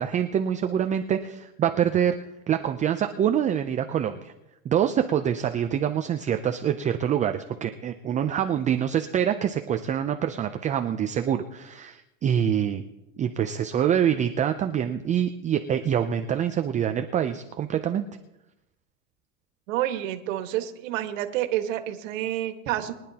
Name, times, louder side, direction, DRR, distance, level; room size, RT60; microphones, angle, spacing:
voice 1, 0.0-2.2 2.5-4.3 4.6-12.8 13.2-18.1, right 9 dB, 20° right, 7 dB, 0.5 m, -25 dB
voice 2, 19.7-22.9, right 13 dB, 65° right, 7 dB, 1.7 m, -29 dB
23.0 x 10.5 x 2.9 m, 0.97 s
supercardioid pair, 120°, 41 cm